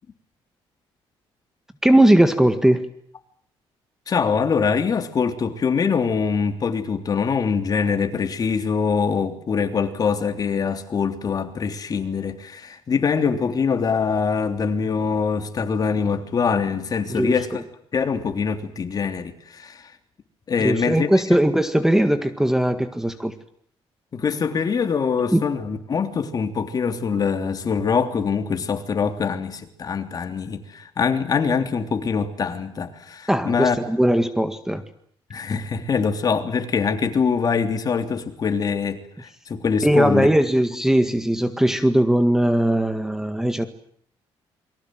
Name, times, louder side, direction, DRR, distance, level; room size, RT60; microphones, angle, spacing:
voice 1, 1.8-2.9 17.1-17.6 20.6-23.3 25.3-25.4 33.3-34.8 39.8-43.7, right 1 dB, 5° right, 1.8 m, -19 dB
voice 2, 4.1-17.6 17.9-19.9 20.5-21.1 24.1-33.8 35.3-40.3, left 5 dB, 40° left, 3.3 m, -23 dB
28.5 x 23.5 x 7.8 m
cardioid pair, 120°, 10 cm